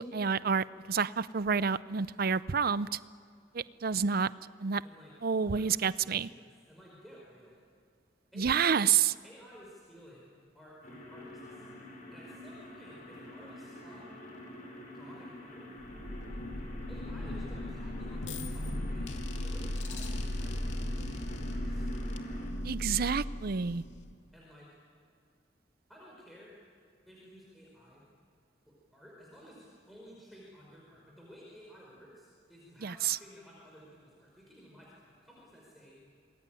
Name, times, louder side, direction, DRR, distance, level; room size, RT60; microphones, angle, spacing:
voice 1, 0.0-3.0 3.5-4.3 4.6-4.8 5.2-6.3 8.4-9.1 22.6-23.8 32.8-33.2, right 6 dB, 55° right, 17 dB, 0.6 m, -29 dB
voice 2, 4.8-5.1 5.5-5.7 6.2-7.6 8.3-8.9 9.2-11.7 12.1-14.1 14.9-15.7 16.9-21.9 24.3-24.7 25.9-26.5 27.1-28.0 28.7-36.0, equal, ahead, -4 dB, 5.1 m, -54 dB
sound 1, 10.8-22.5, left 1 dB, 45° left, 5.2 m, -48 dB
sound 2, 15.8-24.3, left 1 dB, 80° left, 2.3 m, -37 dB
27.0 x 21.5 x 9.2 m, 2.2 s
head